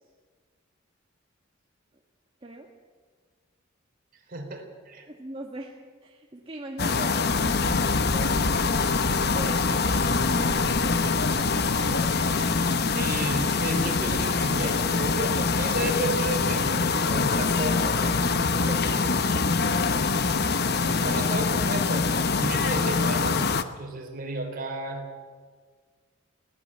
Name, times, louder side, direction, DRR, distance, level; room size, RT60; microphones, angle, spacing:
voice 1, 4.3-5.1 12.9-18.4 20.6-20.7 21.0-25.1, right 1 dB, 45° right, 3 dB, 3.5 m, -33 dB
voice 2, 5.1-5.8 6.0-8.4 9.1-12.7 14.6-15.1 18.7-20.0 20.4-20.5 20.8-21.2, right 2 dB, 25° right, 0 dB, 1.6 m, -41 dB
sound 1, 6.8-23.6, left 4 dB, 50° left, 0.9 m, -24 dB
sound 2, 7.3-18.2, left 1 dB, 70° left, 6.6 m, -39 dB
21.0 x 17.5 x 7.4 m, 1.6 s
head